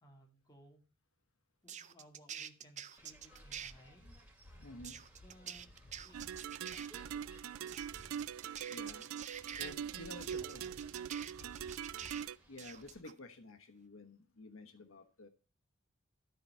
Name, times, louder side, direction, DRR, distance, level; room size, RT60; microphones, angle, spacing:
voice 1, 0.0-0.9 1.6-4.1 5.1-5.7 6.0-6.4 10.0-11.3, equal, 20° left, 2.1 m, -62 dB
sound 1, 1.7-3.7 4.8-6.9 7.7-9.7 10.2-12.2 12.6-13.1, right 8 dB, 35° right, 0.5 m, -47 dB
sound 2, 3.0-13.0, equal, 10° right, 2.6 m, -60 dB
voice 2, 4.6-5.0 8.7-9.0 9.6-10.6 12.5-15.3, left 2 dB, 80° left, 1.0 m, -51 dB
sound 3, 6.1-12.4, right 9 dB, 85° right, 0.3 m, -43 dB
12.5 x 4.4 x 5.5 m
head